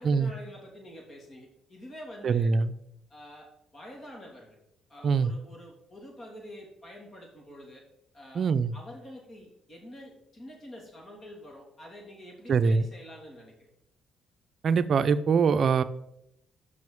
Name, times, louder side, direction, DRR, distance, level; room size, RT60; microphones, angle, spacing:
voice 1, 0.0-2.5 3.1-4.6 4.9-7.9 8.1-8.4 8.7-13.7, equal, 40° left, 0 dB, 3.0 m, -47 dB
voice 2, 2.2-2.7 5.0-5.3 8.3-8.7 12.5-12.9 14.6-15.8, right 5 dB, 55° right, 13 dB, 0.5 m, -23 dB
6.4 x 5.6 x 7.0 m, 0.79 s
cardioid pair, 90°, 0 cm